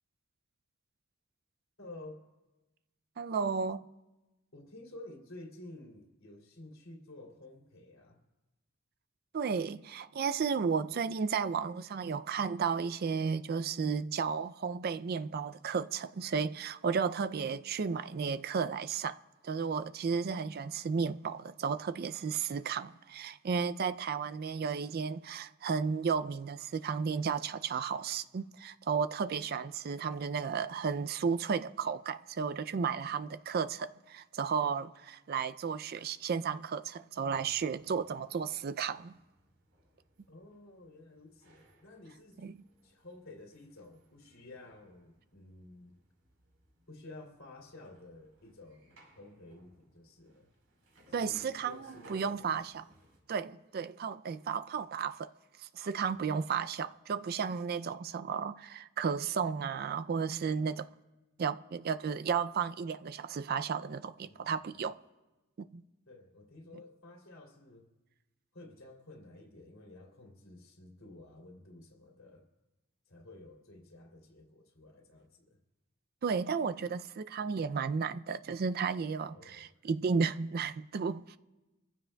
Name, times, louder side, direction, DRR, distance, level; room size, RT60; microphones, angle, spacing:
voice 1, 1.8-2.2 4.5-8.2 37.9-38.1 40.3-42.4 42.8-45.9 46.9-50.5 51.2-52.3 56.5-56.6 64.2-64.5 66.1-67.9 68.5-72.5 73.1-75.6 79.3-79.7, left 2 dB, 80° left, 2.8 m, -52 dB
voice 2, 3.2-3.9 9.3-19.2 19.4-39.1 42.4-42.5 51.1-52.9 53.3-55.3 55.6-60.9 61.4-65.0 65.6-65.8 76.2-81.4, right 6 dB, 50° right, 0.4 m, -33 dB
sound 1, 37.3-53.2, right 1 dB, 90° right, 4.4 m, -64 dB
26.0 x 15.0 x 2.3 m
head